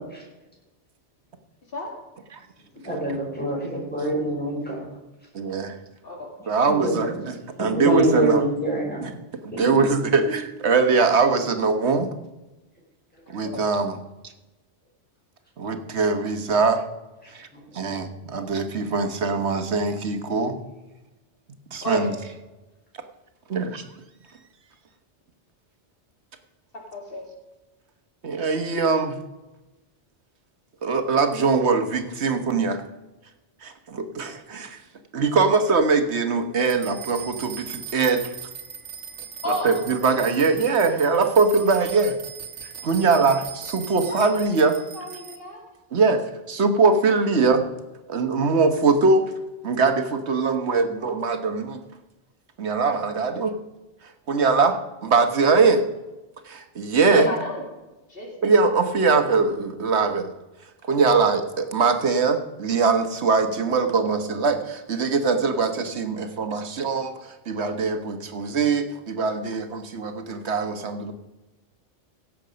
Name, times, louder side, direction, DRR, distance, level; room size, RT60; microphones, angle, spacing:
voice 1, 2.8-4.8 6.7-7.0 7.7-9.0 9.5-9.6 10.2-10.3 17.5-17.6, right 1 dB, 10° left, -4 dB, 5.4 m, -25 dB
voice 2, 5.3-5.8 6.5-7.3 7.6-8.4 9.0-9.1 9.4-12.1 13.3-14.0 15.6-16.9 17.3-17.5 17.7-20.6 21.7-22.1 23.5-23.8 28.2-29.2 30.8-32.8 33.6-34.8 35.1-38.3 39.5-42.2 42.6-44.7 45.9-47.6 48.1-49.3 49.6-51.8 52.6-53.6 54.0-55.8 56.4-57.3 58.4-60.3 60.9-71.1, right 4 dB, 70° right, 7 dB, 1.5 m, -22 dB
voice 3, 26.9-27.2 39.4-39.7 44.0-44.3 44.9-45.6 57.0-57.6 58.1-58.3 60.9-61.0, left 2 dB, 50° left, -1 dB, 2.5 m, -31 dB
sound 1, 36.7-45.4, right 7 dB, 85° right, 1.6 m, -39 dB
16.5 x 7.6 x 5.1 m, 1.1 s
omnidirectional pair, 1.2 m